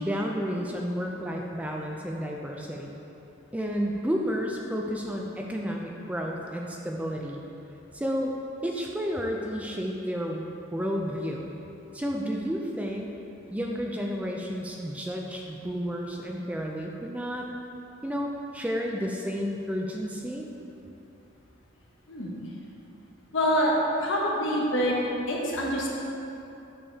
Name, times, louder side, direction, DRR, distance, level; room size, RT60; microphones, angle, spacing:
voice 1, 0.0-3.0 3.5-7.4 7.9-8.3 8.6-10.4 10.7-11.6 11.9-13.1 13.5-17.5 18.0-20.5, equal, 5° right, -1 dB, 0.4 m, -31 dB
voice 2, 23.3-23.7 24.0-25.0 25.3-25.9, equal, 65° left, -3 dB, 1.2 m, -25 dB
8.6 x 6.6 x 2.8 m, 3.0 s
head